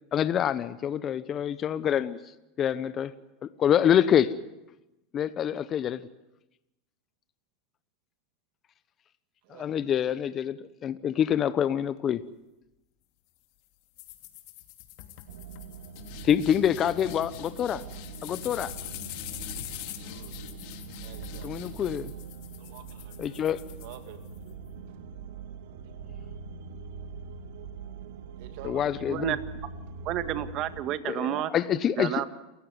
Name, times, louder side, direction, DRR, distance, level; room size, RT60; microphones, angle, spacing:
voice 1, 0.1-2.2 2.6-3.1 3.4-4.3 5.1-6.1 9.6-12.2 16.2-17.8 18.2-18.7 21.4-22.1 23.2-23.6 28.6-29.3 31.1-32.2, left 9 dB, 30° left, 0.9 m, -26 dB
sound 1, 14.0-24.5, left 13 dB, 60° left, 2.9 m, -44 dB
sound 2, 15.3-30.8, right 5 dB, 85° right, 1.9 m, -43 dB
voice 2, 20.0-20.4 21.0-21.9 22.6-23.4 23.8-24.6 24.9-25.0 28.4-28.9, right 11 dB, 65° right, 2.5 m, -49 dB
voice 3, 30.1-31.5 32.0-32.3, right 12 dB, 45° right, 1.7 m, -30 dB
28.5 x 15.5 x 9.7 m
supercardioid pair, 135°, 0 cm